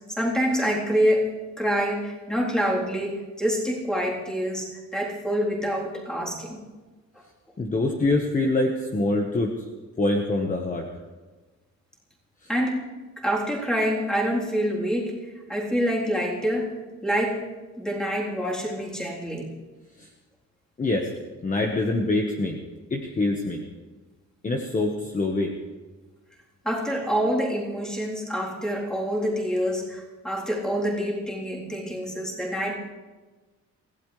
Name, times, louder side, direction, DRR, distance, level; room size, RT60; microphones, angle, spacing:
voice 1, 0.2-1.3 1.6-6.6 12.5-12.8 13.2-15.2 15.5-16.8 17.0-17.4 17.8-19.5 26.6-32.8, equal, ahead, -4 dB, 3.7 m, -26 dB
voice 2, 7.6-9.5 10.0-10.9 20.0-20.1 20.8-21.1 21.4-22.6 22.9-23.6 24.4-25.5, left 2 dB, 25° left, 1 dB, 1.3 m, -25 dB
27.5 x 16.0 x 3.3 m, 1.3 s
cardioid pair, 145°, 31 cm